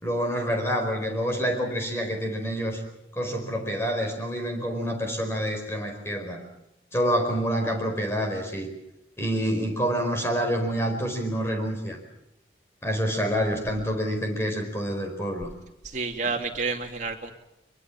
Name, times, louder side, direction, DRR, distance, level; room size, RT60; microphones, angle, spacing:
voice 1, 0.0-2.8 3.1-6.4 6.9-8.7 9.2-12.0 12.8-15.5, equal, 15° left, 3 dB, 4.7 m, -27 dB
voice 2, 15.8-17.3, right 4 dB, 40° right, 3 dB, 2.7 m, -29 dB
23.5 x 23.0 x 7.4 m, 0.88 s
head